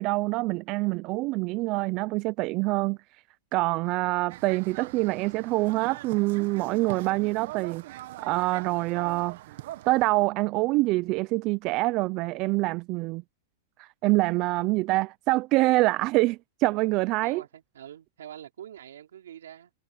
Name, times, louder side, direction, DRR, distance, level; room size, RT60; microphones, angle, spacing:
voice 1, 0.0-3.0 3.5-7.8 8.2-9.4 9.9-13.2 13.8-17.4, right 21 dB, 40° right, 0.5 m, -25 dB
sound 1, 4.3-10.1, right 15 dB, 60° right, 1.3 m, -42 dB
voice 2, 17.2-19.7, right 10 dB, 85° right, 3.3 m, -45 dB
hypercardioid pair, 140°, 0 cm